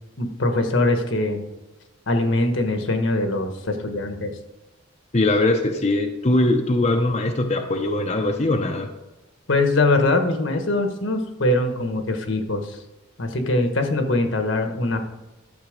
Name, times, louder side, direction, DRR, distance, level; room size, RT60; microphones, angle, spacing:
voice 1, 0.2-1.4 2.1-4.3 9.5-12.8 13.2-15.0, left 2 dB, 70° left, 6 dB, 1.3 m, -22 dB
voice 2, 5.1-8.9, left 2 dB, 35° left, 3 dB, 0.7 m, -21 dB
12.0 x 7.0 x 5.1 m, 1.1 s
head